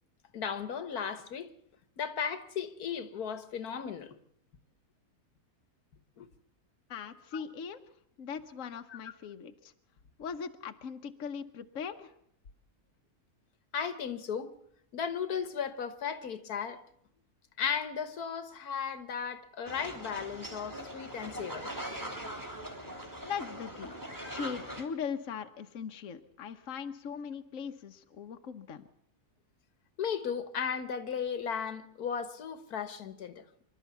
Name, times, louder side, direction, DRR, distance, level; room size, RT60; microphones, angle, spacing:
voice 1, 0.3-1.5 2.0-4.2 6.2-6.3 13.7-14.5 14.9-16.8 17.6-21.7 30.0-33.4, left 7 dB, 80° left, 1.8 m, -35 dB
voice 2, 6.9-7.8 8.2-9.7 10.2-12.1 23.2-24.0 24.3-28.9, left 6 dB, 60° left, 1.3 m, -40 dB
sound 1, 19.7-24.8, equal, 10° right, 3.2 m, -41 dB
26.0 x 12.5 x 8.3 m
omnidirectional pair, 1.6 m